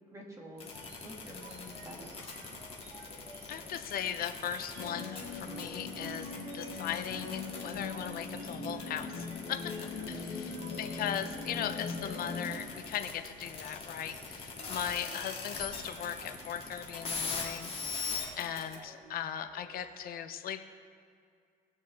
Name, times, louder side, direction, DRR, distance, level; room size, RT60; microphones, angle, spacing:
voice 1, 0.1-0.7 1.0-2.2 10.1-10.4, equal, 15° right, -1 dB, 2.0 m, -48 dB
sound 1, 0.6-18.7, left 4 dB, 35° left, 2.3 m, -41 dB
sound 2, 0.6-19.8, right 3 dB, 85° right, 1.8 m, -55 dB
voice 2, 3.5-9.7 10.1-18.0 18.4-20.6, left 9 dB, 60° left, 8 dB, 0.7 m, -38 dB
sound 3, 4.8-12.5, left 4 dB, 80° left, 1.5 m, -41 dB
19.0 x 6.4 x 3.4 m, 2.2 s
cardioid pair, 110°, 17 cm